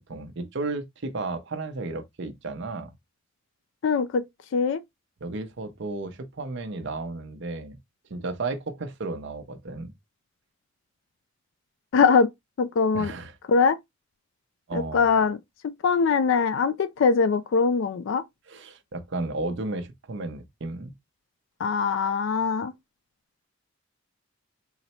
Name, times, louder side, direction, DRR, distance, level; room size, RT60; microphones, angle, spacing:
voice 1, 0.1-2.9 5.2-7.8 8.1-9.9 12.9-13.4 14.7-15.1 18.5-20.9, right 3 dB, 60° right, 0.7 m, -33 dB
voice 2, 3.8-4.2 4.5-4.8 11.9-12.3 12.6-13.1 13.5-13.8 14.7-15.4 15.8-18.2 21.6-22.7, left 5 dB, 65° left, 0.3 m, -22 dB
3.9 x 2.1 x 4.1 m
head